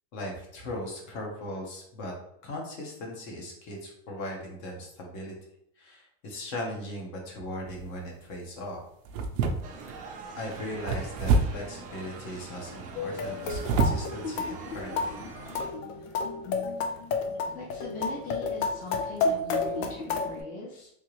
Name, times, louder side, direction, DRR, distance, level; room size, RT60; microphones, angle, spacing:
voice 1, 0.1-2.1 2.4-5.3 5.8-8.8 10.4-15.2, left 1 dB, 45° left, 0 dB, 1.1 m, -38 dB
sound 1, 7.7-8.0 9.1-10.0 10.9-11.7 13.3-14.1 14.7-14.8 15.3-15.5, right 4 dB, 75° right, 0.7 m, -27 dB
sound 2, 9.6-15.7, right 4 dB, 20° right, 0.4 m, -43 dB
sound 3, 13.0-20.4, left 4 dB, 85° left, 0.7 m, -31 dB
voice 2, 17.5-20.9, left 3 dB, 20° left, -5 dB, 0.7 m, -41 dB
3.4 x 2.9 x 3.1 m, 0.75 s
supercardioid pair, 155°, 39 cm